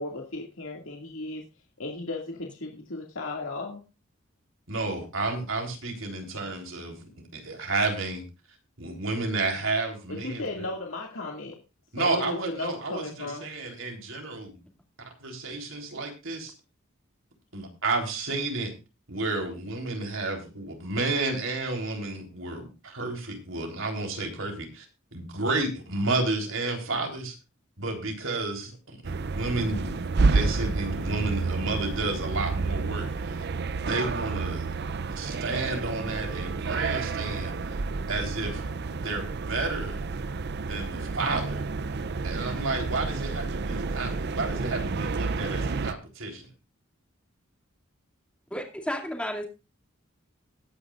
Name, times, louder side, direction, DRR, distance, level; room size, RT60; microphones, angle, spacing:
voice 1, 0.0-1.4 1.8-3.8 10.1-11.6 12.0-13.5, left 2 dB, 75° left, 1 dB, 2.3 m, -35 dB
voice 2, 4.7-8.2 8.8-10.7 11.9-14.6 15.2-16.5 17.5-18.7 19.1-24.9 25.1-27.3 27.8-33.5 33.9-34.7 35.1-37.8 38.1-38.6 39.0-40.0 40.6-41.6 42.2-46.5, right 3 dB, 70° right, 3 dB, 3.7 m, -31 dB
sound 1, 29.1-45.9, right 4 dB, 50° right, 0.5 m, -30 dB
voice 3, 48.5-49.4, equal, 5° left, 2 dB, 2.5 m, -33 dB
21.5 x 9.5 x 2.5 m, 0.30 s
head